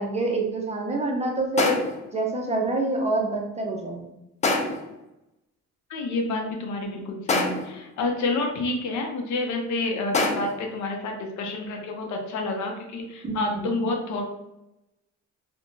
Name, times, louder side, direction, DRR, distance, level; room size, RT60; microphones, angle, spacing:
voice 1, 0.0-1.8 2.1-4.1 13.2-13.3 13.6-13.7, right 2 dB, 20° right, 0 dB, 0.6 m, -26 dB
sound 1, 1.6-2.1 4.4-4.9 7.3-7.8 10.1-10.7, left 2 dB, 25° left, 0.4 m, -25 dB
voice 2, 5.9-14.3, left 2 dB, 75° left, 2 dB, 0.6 m, -29 dB
2.7 x 2.2 x 2.6 m, 0.89 s
cardioid pair, 90°, 30 cm